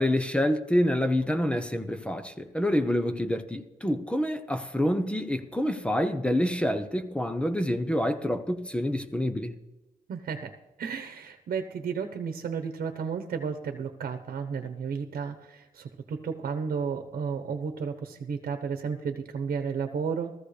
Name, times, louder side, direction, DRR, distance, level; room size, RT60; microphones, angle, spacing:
voice 1, 0.0-9.5, left 1 dB, 5° left, 0.9 m, -27 dB
voice 2, 10.1-10.5 10.8-20.3, right 6 dB, 75° right, 1.1 m, -33 dB
16.5 x 14.5 x 3.3 m
wide cardioid pair, 125°, 15 cm